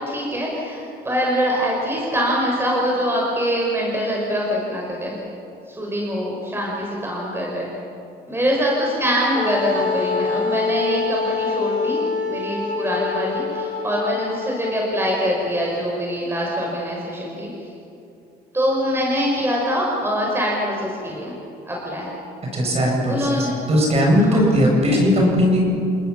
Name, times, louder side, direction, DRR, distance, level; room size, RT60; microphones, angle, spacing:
voice 1, 0.0-5.2 5.7-7.7 8.3-17.5 18.5-21.4 21.7-22.1 23.0-23.5 24.2-24.4, equal, 15° right, -3 dB, 5.7 m, -24 dB
Wind instrument woodwind instrument, 9.3-15.3, left 4 dB, 50° left, 3.0 m, -25 dB
voice 2, 22.5-25.6, equal, 35° right, -1 dB, 7.7 m, -18 dB
29.5 x 19.5 x 7.2 m, 2.6 s
cardioid pair, 110°, 17 cm